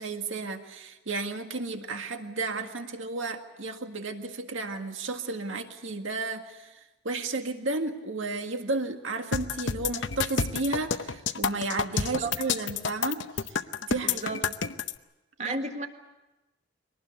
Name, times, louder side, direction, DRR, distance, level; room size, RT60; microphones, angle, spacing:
voice 1, 0.0-14.3 15.4-15.6, right 3 dB, 80° right, 5 dB, 2.0 m, -33 dB
sound 1, 9.3-14.9, left 6 dB, 70° left, 0.8 m, -29 dB
voice 2, 14.0-14.4 15.4-15.9, right 2 dB, 35° right, 5 dB, 1.8 m, -32 dB
23.0 x 19.5 x 8.1 m, 1.0 s
head